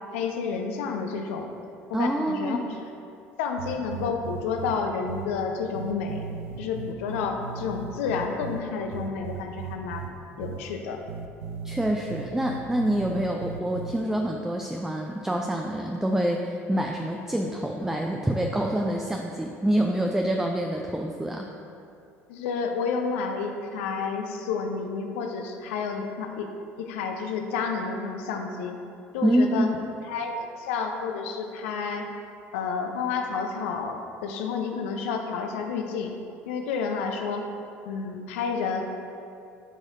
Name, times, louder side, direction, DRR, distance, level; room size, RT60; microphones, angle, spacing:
voice 1, 0.1-1.5 2.0-2.8 3.4-6.2 6.6-10.1 10.4-11.0 22.3-26.5 26.8-28.8 29.1-29.7 30.1-32.1 32.5-36.1 36.4-37.5 37.9-38.8, left 5 dB, 65° left, 4 dB, 0.7 m, -30 dB
voice 2, 1.9-2.6 11.6-21.5 29.2-29.7, right 1 dB, 5° right, 1 dB, 0.5 m, -26 dB
sound 1, 3.6-4.8 5.1-5.3 5.7-8.6 8.9-10.1 10.4-10.6 11.1-13.9, right 6 dB, 75° right, 0.4 m, -37 dB
11.5 x 4.9 x 2.7 m, 2.6 s
figure-of-eight pair, 65°, 7 cm